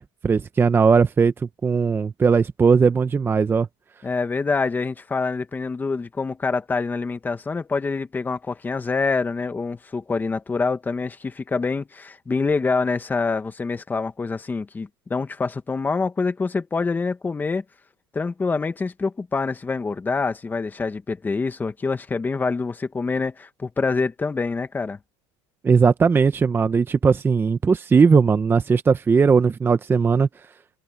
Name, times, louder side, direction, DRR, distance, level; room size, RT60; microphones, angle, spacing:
voice 1, 0.0-1.3 1.6-3.7 25.6-30.3, right 5 dB, 15° right, 1.0 m, -18 dB
voice 2, 4.0-17.6 18.1-25.0, left 4 dB, 15° left, 1.7 m, -26 dB
supercardioid pair, 130°, 13 cm